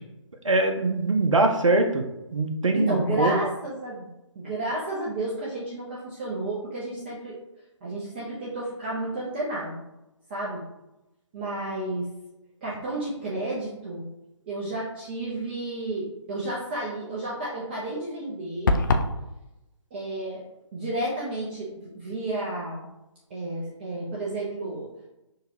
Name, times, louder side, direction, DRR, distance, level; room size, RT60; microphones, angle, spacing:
voice 1, 0.4-2.0 2.3-3.4, right 2 dB, 80° right, 5 dB, 0.7 m, -22 dB
voice 2, 2.7-4.1 4.4-7.4 7.8-9.8 10.3-10.6 11.3-12.1 12.6-14.1 14.4-18.7 19.9-20.4 20.7-22.9 23.3-24.9, right 1 dB, 20° right, -5 dB, 0.6 m, -31 dB
sound 1, 18.7-19.2, left 3 dB, 40° left, 0.4 m, -21 dB
6.3 x 2.3 x 2.8 m, 0.95 s
figure-of-eight pair, 145°, 16 cm